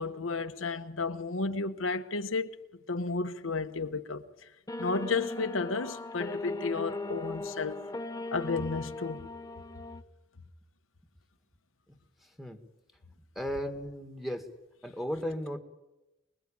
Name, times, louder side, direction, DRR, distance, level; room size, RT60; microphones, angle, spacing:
voice 1, 0.0-2.5 2.9-4.2 4.8-7.9 8.3-9.2, left 3 dB, 90° left, 1.3 m, -32 dB
sound 1, 4.7-10.0, left 2 dB, 20° left, 0.9 m, -38 dB
voice 2, 12.2-12.6 13.4-14.5 14.8-15.6, equal, ahead, 2.0 m, -35 dB
24.5 x 22.0 x 8.8 m
head